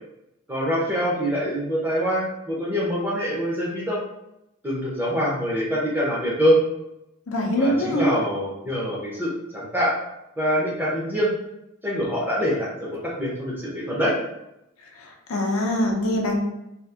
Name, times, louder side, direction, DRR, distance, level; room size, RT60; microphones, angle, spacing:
voice 1, 0.5-4.0 4.6-6.6 7.6-9.9 10.4-11.3 11.8-14.2, equal, 10° right, -5 dB, 0.6 m, -24 dB
voice 2, 7.3-8.2 15.0-16.4, left 1 dB, 80° left, 0 dB, 0.6 m, -23 dB
2.8 x 2.5 x 2.4 m, 0.86 s
head